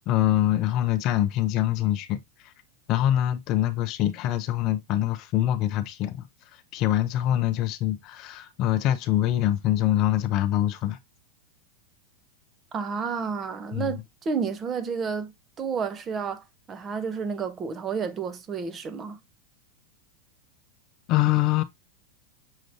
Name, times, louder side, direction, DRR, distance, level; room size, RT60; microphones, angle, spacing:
voice 1, 0.1-2.5 2.9-6.3 6.5-11.0 13.7-13.9 21.1-21.6, left 13 dB, 40° left, 0.5 m, -24 dB
voice 2, 12.7-15.3 15.6-19.2, right 5 dB, 20° right, 0.6 m, -31 dB
6.4 x 3.1 x 2.5 m
supercardioid pair, 155°, 0 cm